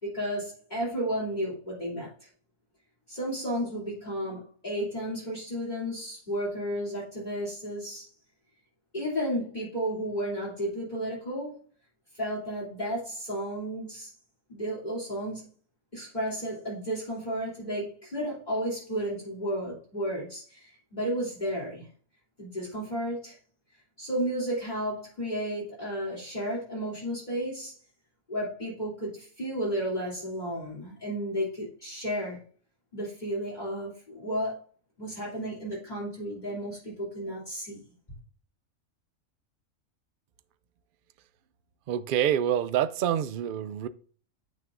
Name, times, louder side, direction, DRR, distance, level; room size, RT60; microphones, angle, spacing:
voice 1, 0.0-2.1 3.1-8.1 8.9-11.6 12.1-14.1 14.5-15.4 15.9-21.9 22.4-23.4 24.0-27.7 28.3-32.4 32.9-34.6 35.0-37.8, equal, 30° left, 3.2 m, -33 dB
voice 2, 41.9-43.9, right 10 dB, 60° right, 0.5 m, -27 dB
9.1 x 6.3 x 2.5 m
omnidirectional pair, 1.4 m